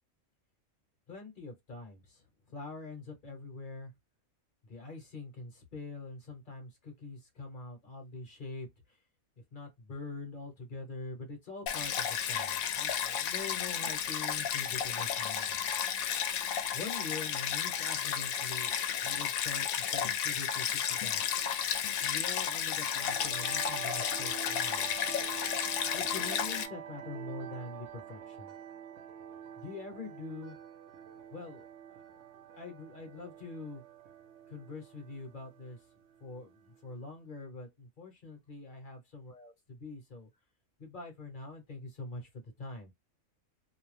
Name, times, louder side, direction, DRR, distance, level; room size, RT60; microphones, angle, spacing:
voice 1, 1.1-3.9 4.6-9.0 9.5-15.7 16.7-21.4 22.0-25.1 25.9-28.5 29.6-30.6 31.3-32.2 32.5-33.8 34.5-35.8 36.2-40.3 40.8-42.9, left 3 dB, 40° left, 1.0 m, -44 dB
Stream, 11.7-26.7, left 8 dB, 80° left, 1.0 m, -33 dB
sound 1, 22.9-37.0, right 9 dB, 60° right, 0.9 m, -47 dB
2.6 x 2.1 x 3.2 m
omnidirectional pair, 1.4 m